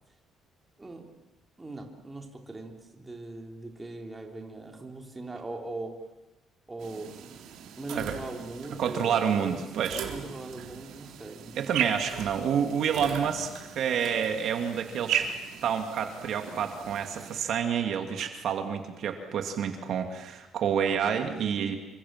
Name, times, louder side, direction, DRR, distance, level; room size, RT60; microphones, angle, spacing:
voice 1, 0.8-1.2 1.6-5.9 6.7-7.5 7.8-9.5 10.1-11.7 20.9-21.8, right 2 dB, 15° right, 2 dB, 3.3 m, -40 dB
sound 1, 6.8-17.4, right 9 dB, 75° right, 3.6 m, -37 dB
voice 2, 8.8-10.1 11.6-15.3 15.6-21.8, right 7 dB, 55° right, 5 dB, 2.5 m, -29 dB
28.0 x 26.0 x 7.5 m, 0.99 s
cardioid pair, 160°, 0 cm